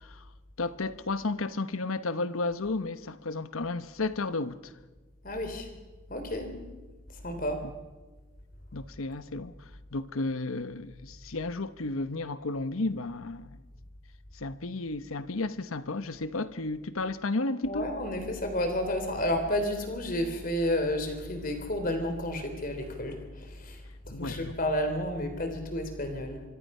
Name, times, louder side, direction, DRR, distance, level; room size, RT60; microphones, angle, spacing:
voice 1, 0.6-4.7 7.6-7.7 8.7-9.5 9.9-13.6 14.3-17.9 24.1-24.5, left 3 dB, 90° left, 1.1 m, -33 dB
voice 2, 5.2-5.7 6.1-6.5 7.2-7.6 17.6-23.8 24.0-26.4, left 1 dB, 40° left, 3.4 m, -31 dB
26.5 x 24.5 x 5.6 m
head